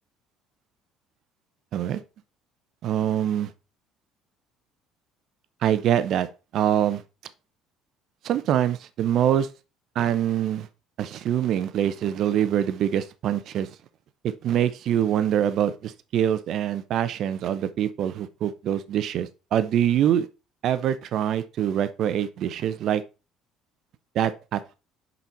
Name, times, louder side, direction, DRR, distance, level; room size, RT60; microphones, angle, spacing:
voice 1, 2.8-3.5 5.6-6.3 6.5-7.0 8.2-9.5 10.0-10.7 11.0-13.7 14.2-20.3 20.6-23.0 24.1-24.8, right 10 dB, 60° right, 0.7 m, -24 dB
5.7 x 5.3 x 4.3 m
hypercardioid pair, 60°, 0 cm